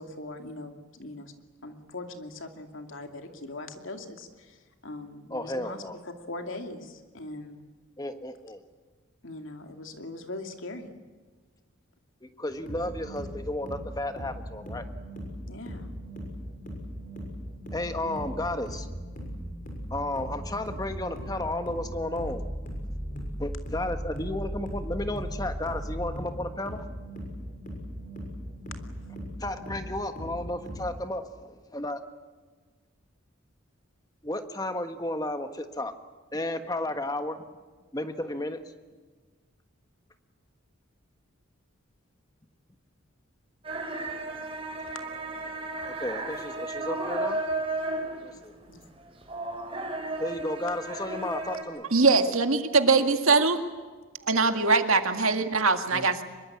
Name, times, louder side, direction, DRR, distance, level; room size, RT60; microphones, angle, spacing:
voice 1, 0.0-1.3 1.6-5.8 6.2-7.7 9.2-10.9 15.5-15.9 28.7-29.1 48.7-48.9, left 2 dB, 70° left, 5 dB, 2.5 m, -41 dB
voice 2, 5.3-6.0 8.0-8.6 12.2-14.9 17.7-18.9 19.9-22.4 23.4-26.9 29.4-32.0 34.2-35.9 36.3-37.4 37.9-38.7 45.8-47.4 48.2-48.5 50.2-51.9 55.9-56.1, left 1 dB, 20° left, 8 dB, 1.4 m, -33 dB
sound 1, 12.5-30.9, equal, 40° left, 6.6 m, -38 dB
sound 2, 43.6-51.6, right 2 dB, 25° right, 3.6 m, -33 dB
voice 3, 51.9-53.6 54.3-56.2, right 4 dB, 90° right, 7 dB, 2.0 m, -22 dB
24.5 x 22.5 x 8.6 m, 1.4 s
head